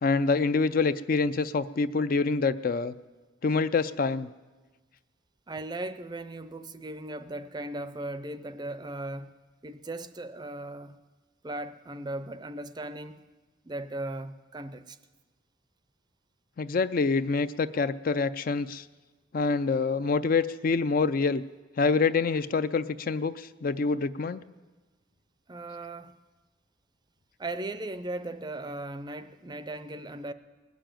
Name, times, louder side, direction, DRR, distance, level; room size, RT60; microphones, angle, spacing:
voice 1, 0.0-2.9 3.4-4.3 16.6-18.8 19.3-21.4 21.8-24.4, left 4 dB, 45° left, 0.4 m, -26 dB
voice 2, 5.5-9.3 9.6-11.0 11.4-13.2 13.6-15.0 25.5-26.2 27.4-30.3, right 2 dB, 20° right, 0.5 m, -37 dB
20.0 x 7.0 x 9.0 m
head